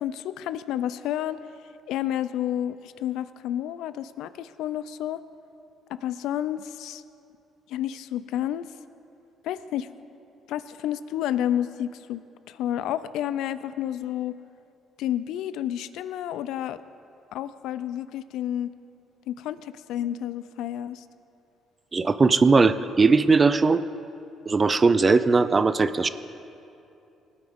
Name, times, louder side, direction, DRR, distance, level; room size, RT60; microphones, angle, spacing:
voice 1, 0.0-1.4 1.9-5.2 5.9-7.0 7.7-8.7 9.4-9.9 10.5-12.2 12.5-14.3 15.0-16.8 17.3-18.7 19.3-21.0, left 11 dB, 80° left, 14 dB, 0.4 m, -30 dB
voice 2, 21.9-23.8 24.5-26.1, right 4 dB, 25° right, 14 dB, 0.4 m, -19 dB
19.0 x 9.5 x 3.6 m, 2.7 s
cardioid pair, 105°, 0 cm